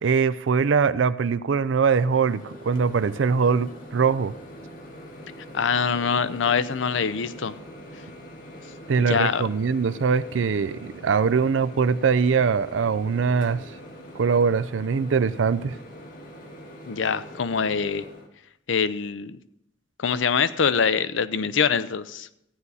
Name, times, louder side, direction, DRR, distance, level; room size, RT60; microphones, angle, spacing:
voice 1, 0.0-4.3 8.9-13.6 14.1-15.8, right 5 dB, 85° right, 0.5 m, -22 dB
Microwave oven, 2.0-18.3, equal, 50° left, 1.8 m, -43 dB
voice 2, 5.5-7.6 9.0-9.4 16.8-18.0 18.7-19.4 20.0-22.3, left 6 dB, 90° left, 0.6 m, -24 dB
14.5 x 9.7 x 4.1 m
head